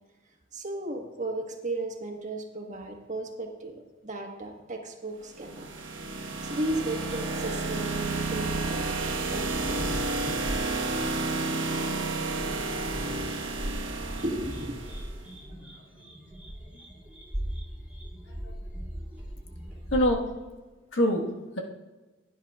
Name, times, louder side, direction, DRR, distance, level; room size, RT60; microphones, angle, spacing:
voice 1, 0.5-5.7 6.1-10.0 12.4-14.8, right 2 dB, 40° right, 2 dB, 1.4 m, -36 dB
sound 1, 5.3-15.2, right 3 dB, 80° right, 1.2 m, -31 dB
sound 2, 7.0-20.1, equal, 10° right, 2.8 m, -40 dB
voice 2, 9.8-10.5 13.6-13.8 15.6-15.7 16.2-16.3 16.7-16.8 18.3-18.5 19.9-20.3 20.9-21.6, equal, 85° left, 1 dB, 1.5 m, -28 dB
16.5 x 9.9 x 2.4 m, 1.2 s
head